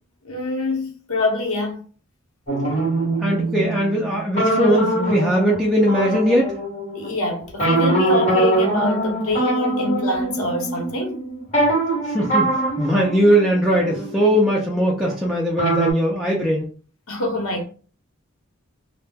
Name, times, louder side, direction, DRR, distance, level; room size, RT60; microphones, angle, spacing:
voice 1, 0.2-1.8 6.9-11.2 17.1-17.6, left 2 dB, 85° left, 0.7 m, -25 dB
sound 1, 2.5-7.1 7.6-15.3 15.6-15.9, right 2 dB, 35° left, 1.2 m, -23 dB
voice 2, 3.2-6.5 12.1-12.5 12.8-16.7, equal, ahead, 0.4 m, -19 dB
2.2 x 2.0 x 3.2 m
head